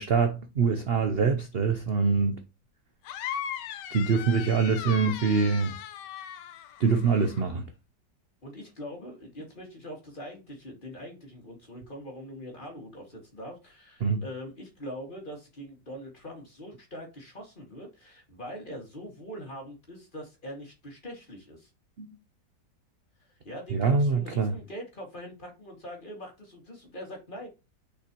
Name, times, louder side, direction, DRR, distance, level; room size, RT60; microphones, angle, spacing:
voice 1, 0.0-2.4 3.9-5.7 6.8-7.6 14.0-14.2 22.0-22.1 23.7-24.5, right 5 dB, 55° right, 0.7 m, -24 dB
sound 1, 3.0-7.4, left 9 dB, 80° left, 1.3 m, -38 dB
voice 2, 8.4-21.7 23.5-27.5, equal, 30° left, 2.2 m, -42 dB
6.7 x 5.4 x 3.0 m
omnidirectional pair, 1.8 m